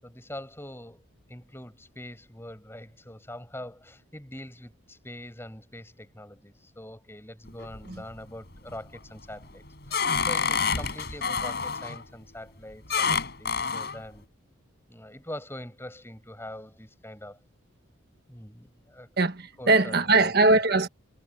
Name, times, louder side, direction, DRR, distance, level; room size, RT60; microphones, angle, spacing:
voice 1, 0.0-14.3 14.9-17.4 18.3-19.1 19.6-20.3, left 1 dB, 10° left, 7.0 m, -43 dB
sound 1, 7.5-8.1 8.6-9.0 9.4-12.0 12.9-14.0, left 5 dB, 50° left, 6.1 m, -28 dB
voice 2, 19.2-20.9, right 3 dB, 50° right, 1.5 m, -21 dB
head